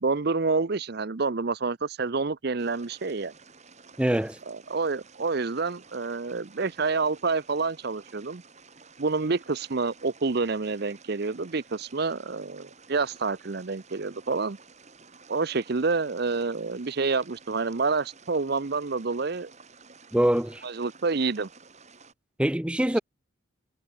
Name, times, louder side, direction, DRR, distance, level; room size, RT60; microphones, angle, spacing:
voice 1, 0.0-3.3 4.5-8.4 9.0-14.6 15.3-19.5 20.6-21.5, right 4 dB, 50° right, 0.7 m, -28 dB
sound 1, 2.6-22.1, right 4 dB, 35° right, 6.2 m, -53 dB
voice 2, 4.0-4.4 20.1-20.6 22.4-23.0, right 1 dB, 5° right, 0.4 m, -24 dB
head